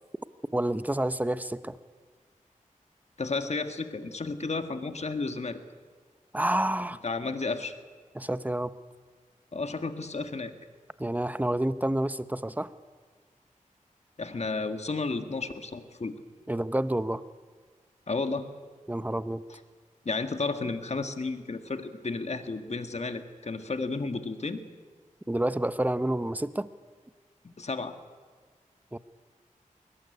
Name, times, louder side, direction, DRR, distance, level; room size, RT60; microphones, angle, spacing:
voice 1, 0.5-1.8 6.3-7.0 8.1-8.7 11.0-12.7 16.5-17.2 18.9-19.4 25.3-26.7 28.9-29.0, right 1 dB, 10° right, 13 dB, 0.9 m, -28 dB
voice 2, 3.2-5.6 7.0-7.7 9.5-10.5 14.2-16.1 18.1-18.5 19.5-19.6 20.1-24.6 27.4-28.0, left 3 dB, 50° left, 8 dB, 1.8 m, -32 dB
22.0 x 19.0 x 9.7 m, 1.5 s
wide cardioid pair, 70°, 14 cm